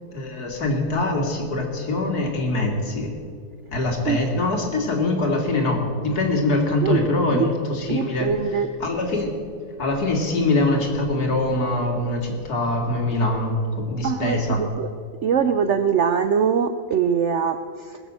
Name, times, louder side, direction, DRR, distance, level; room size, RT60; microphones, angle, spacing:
voice 1, 0.1-3.1 3.7-8.3 8.8-9.4 9.8-14.6, left 2 dB, 65° left, 1 dB, 2.6 m, -23 dB
voice 2, 7.9-8.7 14.0-14.9 15.2-18.0, right 7 dB, 70° right, 10 dB, 0.7 m, -22 dB
20.5 x 6.9 x 7.4 m, 2.2 s
omnidirectional pair, 1.8 m